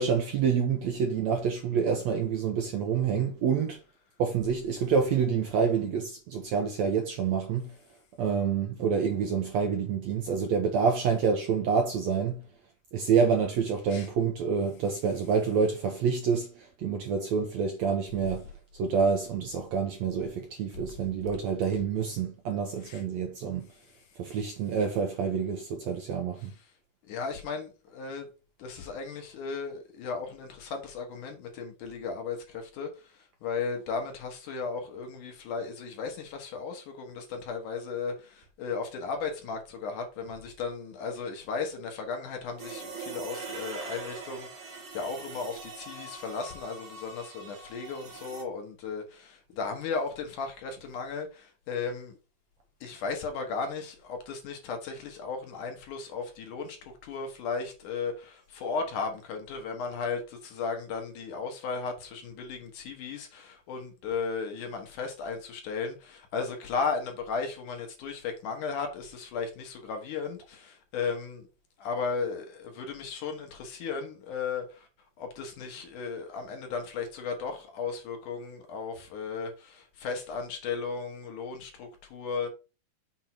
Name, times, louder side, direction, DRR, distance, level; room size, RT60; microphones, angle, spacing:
voice 1, 0.0-3.8 4.2-7.7 8.2-12.4 12.9-18.5 18.8-23.7 24.2-26.5, right 6 dB, 70° right, 1.7 m, -27 dB
voice 2, 22.8-23.4 24.3-24.4 26.4-26.5 27.0-28.3 28.6-52.2 52.8-71.5 71.8-74.9 75.2-82.5, left 5 dB, 65° left, 2.7 m, -35 dB
sound 1, 42.6-48.4, right 4 dB, 50° right, 1.6 m, -42 dB
7.1 x 3.7 x 6.0 m
omnidirectional pair, 4.1 m